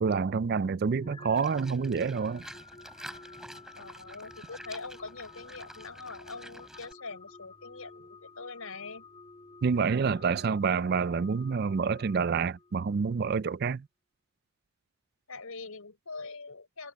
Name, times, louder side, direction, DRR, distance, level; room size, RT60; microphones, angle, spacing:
voice 1, 0.0-2.5 9.6-13.9, right 5 dB, 45° right, 0.3 m, -28 dB
sound 1, 1.0-12.9, left 3 dB, 25° left, 2.6 m, -51 dB
Livestock farm animals working animals, 1.3-6.9, equal, ahead, 3.8 m, -48 dB
voice 2, 3.8-9.0 15.3-16.9, left 4 dB, 85° left, 4.5 m, -43 dB
head